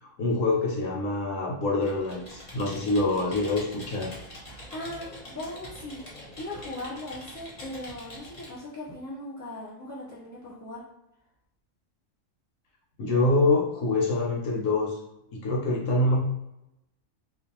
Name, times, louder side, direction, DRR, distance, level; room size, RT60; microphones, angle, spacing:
voice 1, 0.0-4.1 13.0-15.0 15.3-16.2, left 2 dB, 70° left, -2 dB, 0.9 m, -25 dB
Computer keyboard, 1.8-8.6, left 1 dB, 40° left, 0.7 m, -44 dB
voice 2, 4.7-10.8, left 1 dB, 15° right, -10 dB, 1.0 m, -39 dB
2.5 x 2.2 x 2.8 m, 0.88 s
omnidirectional pair, 1.4 m